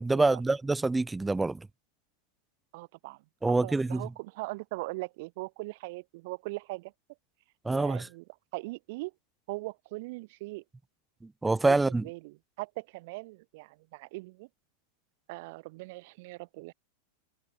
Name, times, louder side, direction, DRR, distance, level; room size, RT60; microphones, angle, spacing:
voice 1, 0.0-1.7 3.4-4.1 7.7-8.1 11.4-12.0, right 3 dB, 10° right, 5.1 m, -26 dB
voice 2, 2.7-6.9 7.7-8.2 8.5-9.1 9.5-10.6 11.8-14.5 15.3-16.7, right 23 dB, 50° right, 7.5 m, -40 dB
figure-of-eight pair, 90°, 0 cm